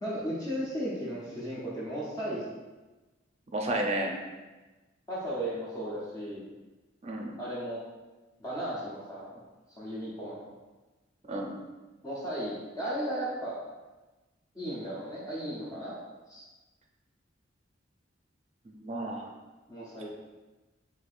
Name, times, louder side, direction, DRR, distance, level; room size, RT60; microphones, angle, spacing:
voice 1, 0.0-2.5 5.1-6.5 7.4-7.8 8.4-9.4 9.8-10.5 12.0-13.6 14.5-15.9 16.3-16.4 19.7-20.1, equal, 20° left, -7 dB, 0.7 m, -35 dB
voice 2, 3.5-4.1 7.0-7.3 11.3-11.5 18.6-19.3, right 1 dB, 35° right, 1 dB, 0.5 m, -32 dB
4.5 x 2.7 x 2.5 m, 1.2 s
head